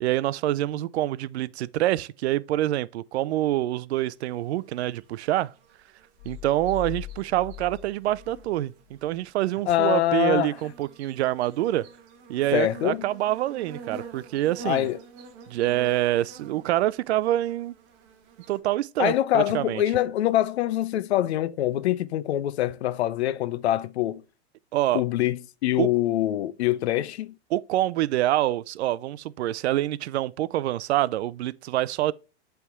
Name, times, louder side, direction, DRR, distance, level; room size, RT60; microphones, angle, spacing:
voice 1, 0.0-5.5 6.3-8.7 9.0-11.8 12.3-14.9 15.5-17.7 18.5-19.8 24.7-25.0 25.8-25.9 27.5-32.1, right 14 dB, 80° right, 0.5 m, -26 dB
sound 1, 4.0-18.6, right 4 dB, 40° right, 1.1 m, -48 dB
sound 2, 6.2-9.2, left 14 dB, 20° left, 0.4 m, -41 dB
voice 2, 9.7-10.5 12.5-13.1 14.6-15.0 19.0-24.2 24.9-27.4, left 13 dB, 75° left, 0.6 m, -24 dB
8.2 x 3.5 x 3.5 m
supercardioid pair, 145°, 32 cm